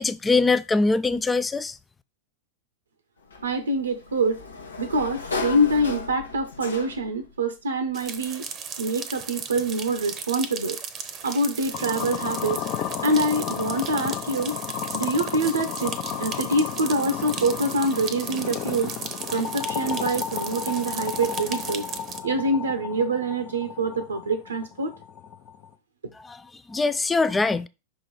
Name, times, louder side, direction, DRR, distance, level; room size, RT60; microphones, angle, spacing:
voice 1, 0.0-1.8 26.2-26.4 26.7-27.7, left 3 dB, 10° left, 0.4 m, -22 dB
Sliding door, 3.3-7.2, left 4 dB, 70° left, 0.9 m, -35 dB
voice 2, 3.4-4.4 4.8-8.4 8.8-10.8 11.2-12.6 13.0-14.6 14.9-18.9 19.3-21.9 22.2-24.9, right 1 dB, 70° right, 0.7 m, -25 dB
sound 1, 7.9-22.2, right 6 dB, 30° right, 0.8 m, -36 dB
sound 2, 11.7-25.7, left 8 dB, 40° left, 0.8 m, -33 dB
5.7 x 3.8 x 4.6 m
figure-of-eight pair, 90°, 0 cm